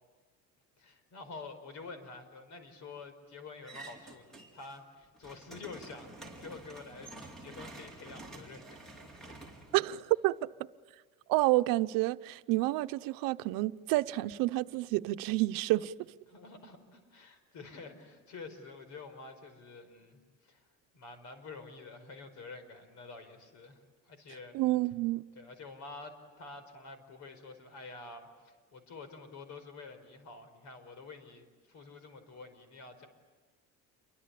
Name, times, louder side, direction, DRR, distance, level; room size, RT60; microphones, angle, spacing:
voice 1, 0.8-8.9 16.3-20.6 20.9-24.6 25.3-33.1, left 3 dB, 60° left, 5.0 m, -48 dB
sound 1, 3.6-4.8 5.1-10.4, right 2 dB, ahead, 4.8 m, -49 dB
voice 2, 9.7-10.5 11.3-15.9 24.5-25.2, right 18 dB, 85° right, 0.9 m, -29 dB
29.0 x 24.0 x 8.5 m
cardioid pair, 140°, 33 cm